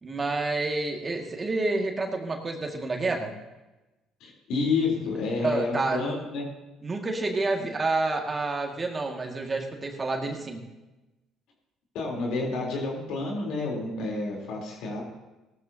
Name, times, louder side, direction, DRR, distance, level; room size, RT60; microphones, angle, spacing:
voice 1, 0.0-3.3 5.4-6.2 6.8-10.7, right 3 dB, 30° right, 2 dB, 2.0 m, -29 dB
voice 2, 4.2-6.4 11.9-15.0, left 3 dB, 70° left, -1 dB, 3.7 m, -29 dB
17.5 x 12.5 x 2.9 m, 1.1 s
hypercardioid pair, 60°, 0 cm